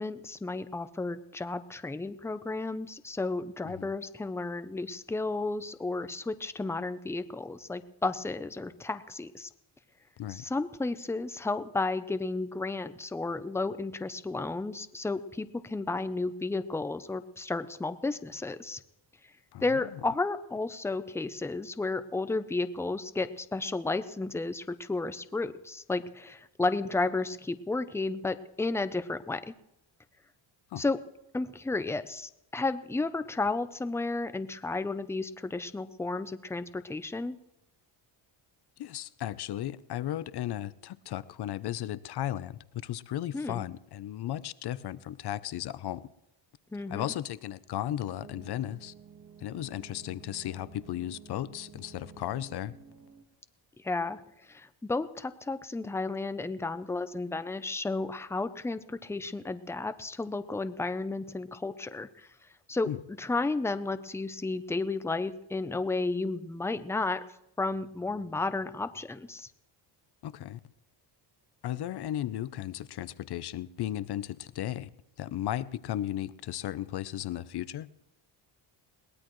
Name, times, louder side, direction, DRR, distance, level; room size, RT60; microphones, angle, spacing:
voice 1, 0.0-9.5 10.3-18.8 19.6-29.5 30.8-31.0 31.3-37.4 43.3-43.6 46.7-47.1 53.8-62.3 62.7-62.9 63.2-67.2 67.6-69.5, left 3 dB, 5° left, 0.5 m, -33 dB
voice 2, 38.8-46.1 46.9-48.9 49.4-52.7 62.8-63.0 70.2-70.6 71.6-74.9 75.2-77.9, left 12 dB, 55° left, 0.7 m, -35 dB
sound 1, 47.9-53.2, right 7 dB, 40° right, 1.8 m, -52 dB
22.0 x 18.5 x 3.1 m
cardioid pair, 130°, 48 cm